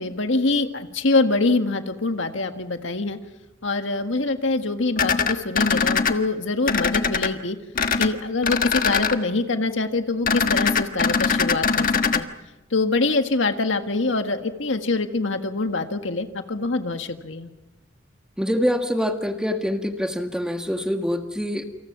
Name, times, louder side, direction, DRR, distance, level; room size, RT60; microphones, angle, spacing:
voice 1, 0.0-3.2 3.6-7.6 8.0-12.3 12.7-17.5, left 3 dB, 70° left, 6 dB, 1.7 m, -24 dB
sound 1, 5.0-6.1 6.7-7.3 7.7-8.1 8.4-9.1 10.3-12.2, left 5 dB, 45° left, 1.4 m, -21 dB
voice 2, 18.4-21.6, equal, 5° right, 5 dB, 1.8 m, -25 dB
28.5 x 26.5 x 6.0 m, 1.0 s
head